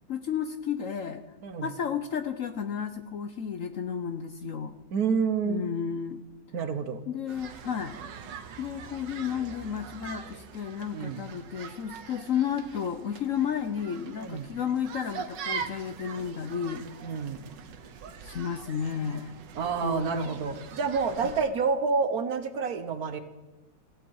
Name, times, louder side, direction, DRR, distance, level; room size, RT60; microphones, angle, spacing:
voice 1, 0.1-1.2 1.6-4.7 5.5-6.2 7.1-8.0 8.6-16.9 18.2-19.4 19.8-20.4, left 8 dB, 60° left, 9 dB, 0.9 m, -32 dB
voice 2, 4.9-5.6 6.5-7.0 10.9-11.2 14.2-14.5 17.0-17.4 19.6-23.2, right 5 dB, 60° right, 10 dB, 1.4 m, -28 dB
sound 1, 7.3-21.4, right 7 dB, 80° right, 1.7 m, -43 dB
17.0 x 15.5 x 4.7 m, 1.1 s
omnidirectional pair, 1.9 m